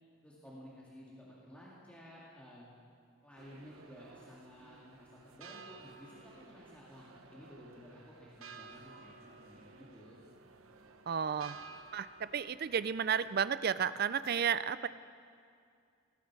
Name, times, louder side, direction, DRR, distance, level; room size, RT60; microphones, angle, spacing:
voice 1, 0.2-2.7 3.2-10.2, equal, 5° left, -6 dB, 2.1 m, -54 dB
sound 1, 3.4-13.5, right 4 dB, 80° right, 1.0 m, -55 dB
voice 2, 11.1-11.6 11.9-14.9, right 7 dB, 45° right, 15 dB, 0.4 m, -32 dB
18.0 x 16.5 x 4.7 m, 2.4 s
head